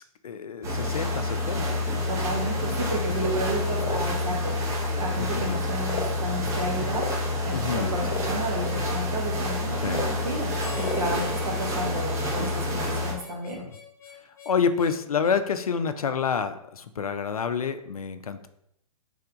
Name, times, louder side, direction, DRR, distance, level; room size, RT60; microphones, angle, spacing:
voice 1, 0.0-2.1 2.6-3.0 5.2-5.6 7.5-7.9 9.8-10.1 11.1-11.3 12.8-13.1 13.5-13.7 14.5-18.5, left 6 dB, 75° left, 10 dB, 0.4 m, -29 dB
sound 1, 0.6-13.1, left 1 dB, 15° right, 0.6 m, -28 dB
voice 2, 2.1-7.1 7.4-13.6, right 1 dB, 65° right, -2 dB, 1.3 m, -32 dB
sound 2, 3.8-4.0 4.9-5.0 5.8-6.2 6.9-7.1 8.0-8.3 9.8-10.1 10.7-11.0, left 3 dB, 55° left, 0.9 m, -32 dB
Harmonica, 10.6-15.8, left 7 dB, 15° left, 0.9 m, -46 dB
3.4 x 3.2 x 3.8 m, 0.77 s
figure-of-eight pair, 110°, 19 cm